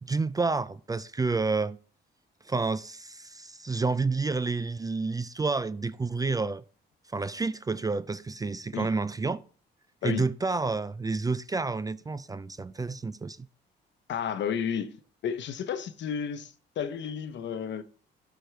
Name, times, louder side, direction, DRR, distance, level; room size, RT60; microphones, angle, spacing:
voice 1, 0.0-1.8 2.5-6.6 7.1-9.4 10.0-13.5, right 3 dB, 20° right, 0.3 m, -29 dB
voice 2, 14.1-15.0 15.2-17.8, left 7 dB, 65° left, 0.9 m, -32 dB
12.5 x 4.6 x 3.3 m
cardioid pair, 90°, 20 cm